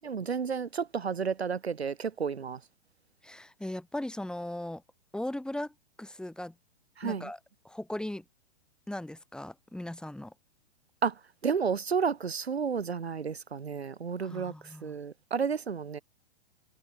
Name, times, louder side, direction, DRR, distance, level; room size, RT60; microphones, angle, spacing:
voice 1, 0.0-2.6 7.0-7.3 11.0-11.1 11.4-14.5 14.8-16.0, right 6 dB, 70° right, 3.3 m, -31 dB
voice 2, 3.2-4.8 5.1-6.5 7.0-7.4 7.6-8.2 8.9-10.3 14.2-14.9, left 1 dB, ahead, 7.5 m, -38 dB
figure-of-eight pair, 110°, 33 cm